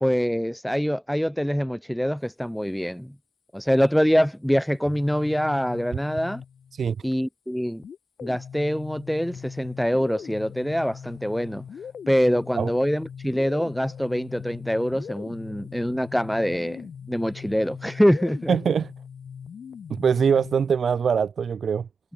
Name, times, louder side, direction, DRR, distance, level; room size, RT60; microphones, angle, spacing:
voice 1, 0.0-3.1 3.5-6.4 7.0-7.8 8.2-11.6 12.1-18.6, equal, ahead, 1.6 m, -24 dB
sound 1, 4.7-6.9 7.8-20.8, left 7 dB, 85° left, 4.3 m, -41 dB
voice 2, 18.5-18.9 19.9-21.9, right 6 dB, 75° right, 1.3 m, -22 dB
wide cardioid pair, 120°, 0 cm